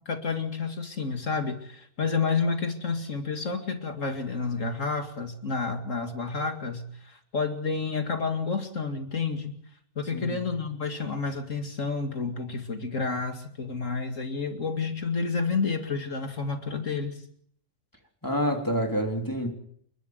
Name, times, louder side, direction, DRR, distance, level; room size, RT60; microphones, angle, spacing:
voice 1, 0.1-9.5 10.0-17.2, left 4 dB, 75° left, 2.6 m, -30 dB
voice 2, 18.2-19.5, equal, 15° left, 3.5 m, -27 dB
29.0 x 12.5 x 8.1 m
omnidirectional pair, 1.3 m